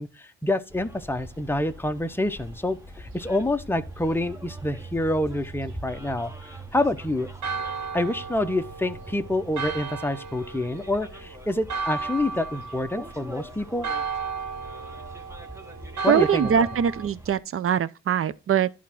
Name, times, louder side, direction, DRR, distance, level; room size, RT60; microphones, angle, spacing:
voice 1, 0.0-7.3 7.9-13.9 16.0-16.5, left 1 dB, 5° left, 0.9 m, -27 dB
Bus, 0.7-17.4, right 2 dB, 10° right, 1.2 m, -43 dB
Church bell, 7.4-17.1, right 5 dB, 70° right, 1.3 m, -35 dB
voice 2, 16.1-18.7, right 8 dB, 45° right, 0.7 m, -22 dB
11.0 x 3.7 x 5.9 m
cardioid pair, 90°, 30 cm